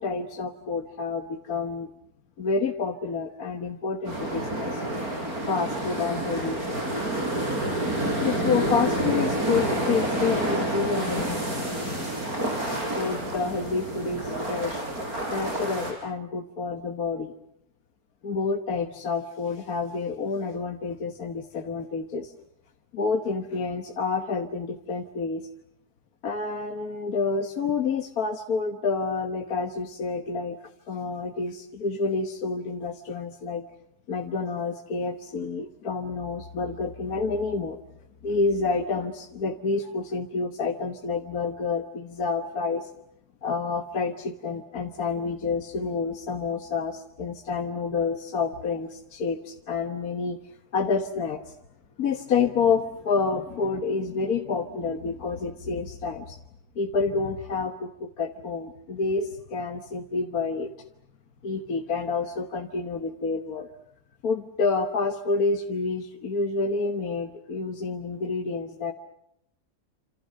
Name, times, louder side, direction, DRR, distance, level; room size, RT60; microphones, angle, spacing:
voice 1, 0.0-1.9 2.4-4.8 5.5-6.8 8.2-11.7 12.9-14.8 15.3-17.3 18.2-22.3 22.9-25.5 26.2-30.6 30.9-33.6 34.1-37.8 38.2-42.9 43.4-50.4 50.7-51.5 52.0-56.4 56.8-60.7 61.4-63.7 64.2-68.9, left 4 dB, 70° left, 6 dB, 1.8 m, -28 dB
sound 1, 4.0-15.9, right 1 dB, 70° right, 5.9 m, -28 dB
28.5 x 27.0 x 6.6 m, 0.78 s
omnidirectional pair, 1.7 m